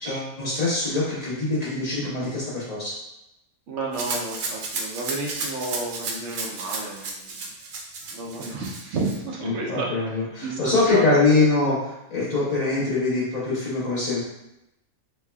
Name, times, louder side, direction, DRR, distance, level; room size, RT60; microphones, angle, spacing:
voice 1, 0.0-2.9 9.4-14.2, left 3 dB, 30° left, -9 dB, 1.1 m, -23 dB
voice 2, 3.7-7.5 8.1-10.1 10.4-11.5, right 2 dB, 65° right, -2 dB, 0.8 m, -31 dB
Rattle (instrument), 3.9-9.2, right 4 dB, 90° right, 1.1 m, -33 dB
3.5 x 3.3 x 2.2 m, 0.88 s
omnidirectional pair, 1.5 m